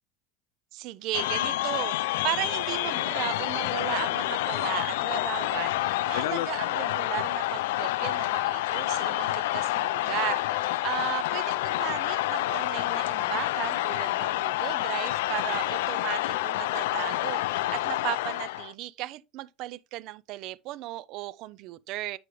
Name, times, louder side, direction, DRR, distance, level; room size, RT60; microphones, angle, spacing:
voice 1, 0.7-22.2, right 16 dB, 45° right, 0.4 m, -36 dB
sound 1, 1.1-18.7, left 16 dB, 80° left, 0.3 m, -28 dB
8.4 x 5.0 x 3.1 m
supercardioid pair, 165°, 0 cm